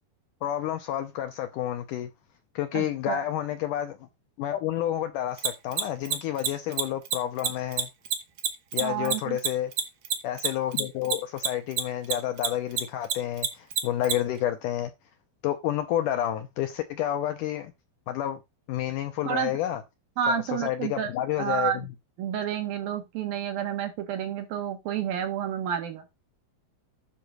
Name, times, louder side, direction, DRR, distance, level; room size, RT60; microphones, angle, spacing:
voice 1, 0.4-2.1 2.6-4.0 4.4-7.9 8.7-9.7 10.2-14.9 15.4-17.7 18.1-18.4 18.7-19.8 20.3-21.9, left 12 dB, 75° left, 2.0 m, -30 dB
voice 2, 2.7-3.2 8.8-9.4 19.3-19.5 20.2-21.1 21.4-21.9 22.2-26.0, right 9 dB, 75° right, 3.5 m, -30 dB
Mechanisms, 5.4-12.1 12.4-14.1, right 8 dB, 55° right, 2.0 m, -26 dB
10.0 x 3.9 x 6.3 m
omnidirectional pair, 4.3 m